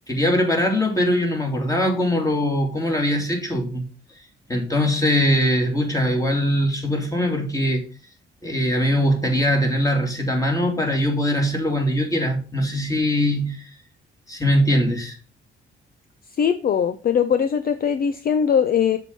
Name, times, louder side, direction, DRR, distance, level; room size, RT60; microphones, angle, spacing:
voice 1, 0.1-3.8 4.5-7.8 8.4-13.6 14.3-15.1, equal, 15° left, 2.7 m, -21 dB
voice 2, 16.4-19.0, left 7 dB, 45° left, 0.6 m, -20 dB
6.8 x 4.6 x 5.4 m
cardioid pair, 90°, 20 cm